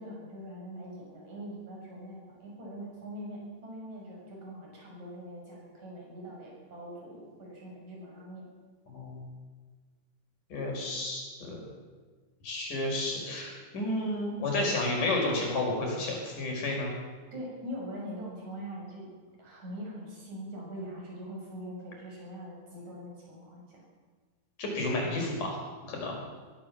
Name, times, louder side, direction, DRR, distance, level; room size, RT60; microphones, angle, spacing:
voice 1, 0.0-8.4 13.7-13.8 14.6-14.7 17.3-19.1 19.4-23.8, equal, 65° right, -2 dB, 8.0 m, -42 dB
voice 2, 10.5-11.6 12.4-16.9 24.6-26.2, left 2 dB, 85° left, 0 dB, 6.8 m, -31 dB
22.5 x 15.5 x 7.4 m, 1.4 s
omnidirectional pair, 3.6 m